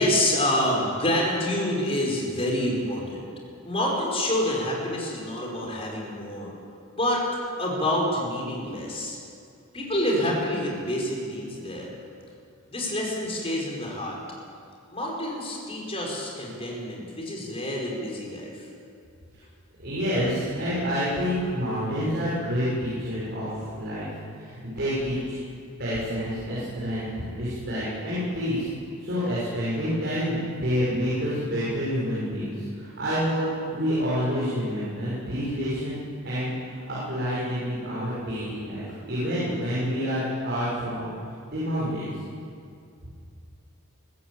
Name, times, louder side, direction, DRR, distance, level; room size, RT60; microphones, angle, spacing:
voice 1, 0.0-3.2 3.6-6.5 6.9-7.2 7.6-9.2 9.7-11.9 12.7-14.2 14.9-18.7, left 1 dB, 25° left, -2 dB, 5.5 m, -27 dB
voice 2, 19.8-24.1 24.4-25.3 25.8-28.7 29.0-33.4 33.7-36.0 36.2-36.5 36.8-41.0 41.5-42.1, equal, 50° right, -9 dB, 6.7 m, -28 dB
22.0 x 14.5 x 8.6 m, 2.3 s
head